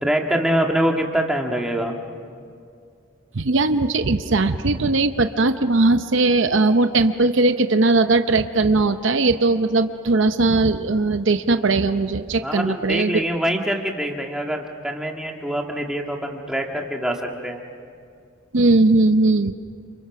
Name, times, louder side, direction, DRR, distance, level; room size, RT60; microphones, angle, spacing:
voice 1, 0.0-2.0 12.4-17.6, right 1 dB, 5° right, 1 dB, 1.8 m, -24 dB
voice 2, 3.3-13.2 18.5-19.5, right 3 dB, 65° right, 9 dB, 0.7 m, -19 dB
30.0 x 28.0 x 6.0 m, 2.3 s
head